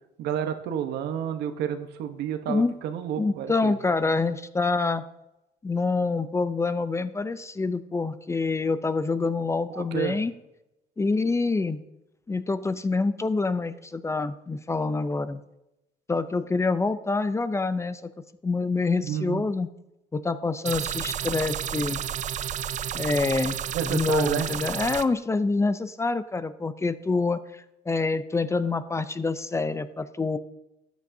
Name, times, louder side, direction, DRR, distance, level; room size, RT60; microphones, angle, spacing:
voice 1, 0.2-3.7 9.7-10.2 19.0-19.4 23.7-24.5, right 9 dB, 80° right, 8 dB, 1.0 m, -30 dB
voice 2, 3.2-5.0 5.6-10.3 11.0-11.8 12.3-15.4 16.1-18.0 18.4-19.7 20.1-22.0 22.9-23.6 23.8-30.4, left 3 dB, 15° left, 13 dB, 0.5 m, -26 dB
sound 1, 20.7-25.0, right 10 dB, 45° right, 0.5 m, -31 dB
13.5 x 9.1 x 2.7 m, 0.91 s
cardioid pair, 110°, 17 cm